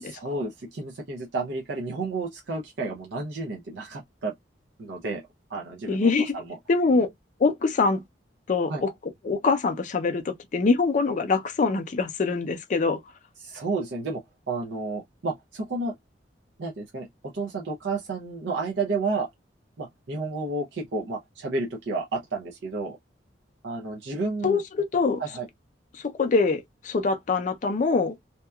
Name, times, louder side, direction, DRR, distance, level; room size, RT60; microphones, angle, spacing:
voice 1, 0.0-4.3 4.8-5.2 5.5-6.6 8.7-8.8 13.4-14.2 14.5-15.9 16.6-19.3 19.8-23.0 23.6-24.6 25.2-25.5, right 3 dB, 70° right, 0.5 m, -31 dB
voice 2, 5.9-6.3 6.7-7.1 7.4-8.0 8.5-8.9 9.2-13.0 24.4-25.2 25.9-28.2, left 4 dB, 45° left, 0.4 m, -24 dB
2.8 x 2.2 x 2.2 m
head